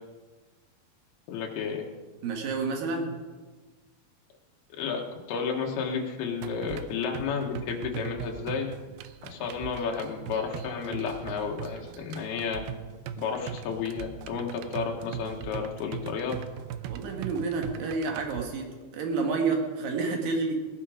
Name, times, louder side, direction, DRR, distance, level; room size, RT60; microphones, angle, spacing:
voice 1, 1.3-1.9 4.8-5.0 5.3-8.7 9.2-12.6 13.2-16.4, left 6 dB, 80° left, 1 dB, 3.4 m, -32 dB
voice 2, 2.2-3.2 16.9-20.6, right 4 dB, 65° right, 2 dB, 3.4 m, -29 dB
sound 1, 6.4-18.4, right 10 dB, 85° right, 2.4 m, -40 dB
18.0 x 11.5 x 5.0 m, 1.3 s
omnidirectional pair, 4.5 m